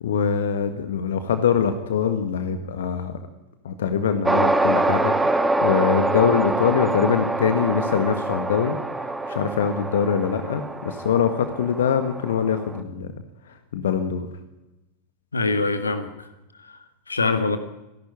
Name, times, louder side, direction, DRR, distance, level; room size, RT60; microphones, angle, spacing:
voice 1, 0.0-3.1 3.6-8.8 9.3-13.1 13.7-14.3, left 7 dB, 60° left, 9 dB, 1.7 m, -23 dB
sound 1, 4.2-12.8, right 2 dB, 10° right, 1.5 m, -25 dB
voice 2, 15.3-16.3 16.6-16.8 17.1-17.6, left 3 dB, 75° left, 9 dB, 1.8 m, -24 dB
27.0 x 11.5 x 9.8 m, 1.0 s
figure-of-eight pair, 90°, 0 cm